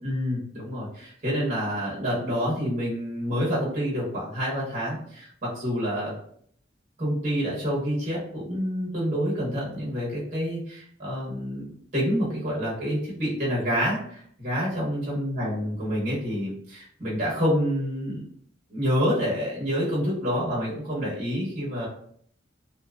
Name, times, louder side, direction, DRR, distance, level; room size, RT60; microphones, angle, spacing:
voice 1, 0.0-6.1 7.0-11.7 11.9-18.2 18.7-21.9, equal, 40° right, -6 dB, 0.9 m, -28 dB
2.7 x 2.3 x 2.3 m, 0.62 s
head